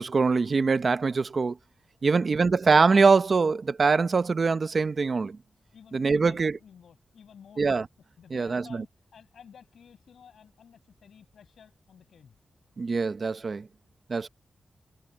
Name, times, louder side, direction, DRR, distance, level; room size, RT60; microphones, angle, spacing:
voice 1, 0.0-1.6 2.0-5.4 5.9-6.5 7.6-7.8 8.3-8.8 12.8-13.7 14.1-14.3, right 4 dB, 40° right, 0.8 m, -23 dB
voice 2, 2.0-2.4 5.7-7.6 8.2-12.4, left 7 dB, 85° left, 5.6 m, -53 dB
wide cardioid pair, 130°, 0 cm